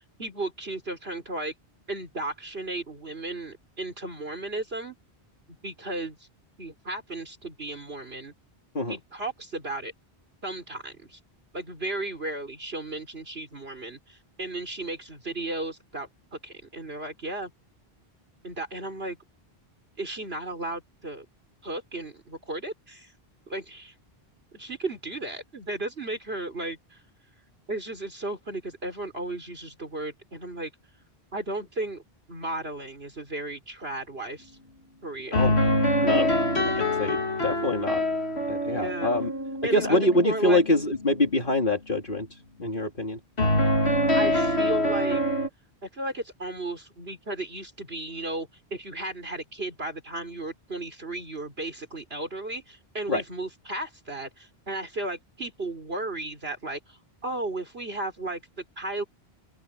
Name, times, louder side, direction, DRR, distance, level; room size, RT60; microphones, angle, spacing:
voice 1, 0.2-1.5 1.9-5.0 5.6-6.3 6.6-8.3 8.9-9.9 10.4-11.2 11.5-17.5 18.4-19.2 20.0-21.2 21.6-23.1 23.5-23.9 24.5-27.0 27.7-30.7 31.3-32.0 32.3-34.6 35.0-35.5 36.7-36.8 38.7-39.1 39.6-40.6 44.1-45.2 45.8-59.0, right 2 dB, 70° right, 4.9 m, -34 dB
sound 1, 35.3-40.6 43.4-45.5, left 1 dB, 90° left, 2.8 m, -25 dB
voice 2, 37.0-38.0 38.5-39.3 39.7-42.3 42.6-43.2 53.1-53.2, left 1 dB, 55° left, 3.0 m, -25 dB
open air
omnidirectional pair, 1.1 m